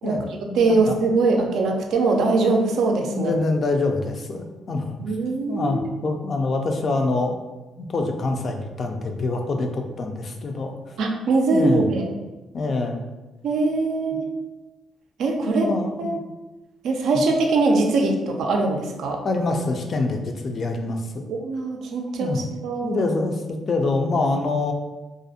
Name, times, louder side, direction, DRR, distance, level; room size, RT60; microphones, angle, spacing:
voice 1, 0.0-1.0 3.1-5.0 5.5-7.4 7.8-10.9 11.5-11.9 12.5-13.0 15.4-16.2 19.2-21.3 22.2-22.4 22.8-24.7, left 3 dB, 45° left, 4 dB, 0.3 m, -25 dB
voice 2, 0.6-3.3 5.0-5.8 11.0-12.1 13.4-14.3 15.2-15.7 16.0-16.2 16.8-19.2 21.3-23.0, right 3 dB, 75° right, 2 dB, 0.4 m, -22 dB
2.4 x 2.0 x 2.7 m, 1.1 s
cardioid pair, 90°, 0 cm